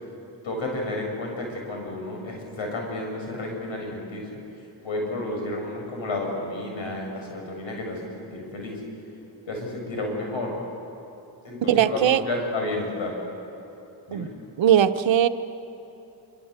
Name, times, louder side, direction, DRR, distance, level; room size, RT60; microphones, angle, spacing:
voice 1, 0.4-4.4 4.8-8.8 9.5-10.5 11.4-13.1 14.1-14.3, left 2 dB, 70° left, 1 dB, 7.9 m, -31 dB
voice 2, 11.7-12.2 14.1-14.3 14.6-15.3, right 10 dB, 65° right, 10 dB, 1.1 m, -19 dB
26.5 x 25.0 x 8.2 m, 3.0 s
supercardioid pair, 60°, 48 cm